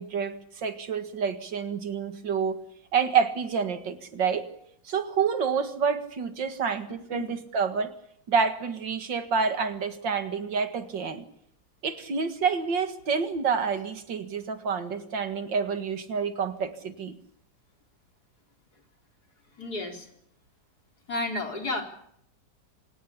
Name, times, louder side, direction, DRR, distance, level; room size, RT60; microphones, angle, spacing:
voice 1, 0.0-2.6 2.9-4.5 4.9-7.9 8.3-11.2 11.8-17.2, right 6 dB, 75° right, 9 dB, 2.5 m, -28 dB
voice 2, 19.6-20.1 21.1-21.8, left 2 dB, 55° left, 3 dB, 4.7 m, -32 dB
27.5 x 18.0 x 8.6 m, 0.71 s
omnidirectional pair, 2.0 m